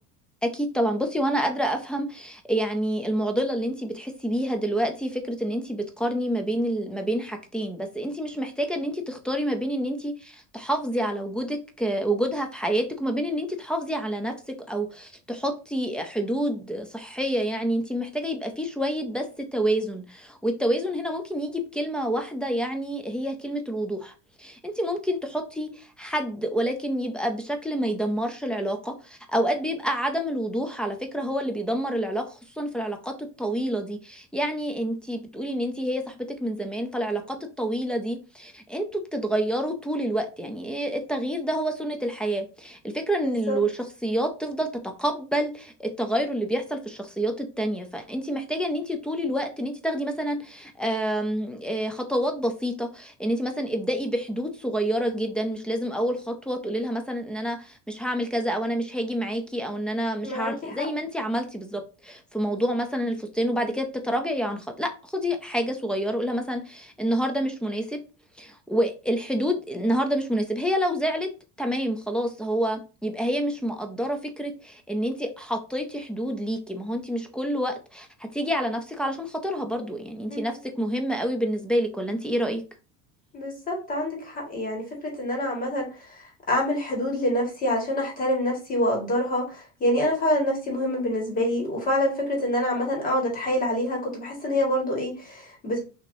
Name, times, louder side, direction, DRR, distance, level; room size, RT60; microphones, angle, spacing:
voice 1, 0.4-14.3 14.7-24.1 24.4-68.0 68.4-71.3 71.6-82.6, equal, 5° left, 0.4 m, -28 dB
voice 2, 43.2-43.6 60.2-60.9 80.3-80.5 83.3-84.8 85.2-85.9 86.5-95.8, left 1 dB, 25° left, 1.7 m, -26 dB
6.1 x 2.9 x 2.6 m
cardioid pair, 165°, 33 cm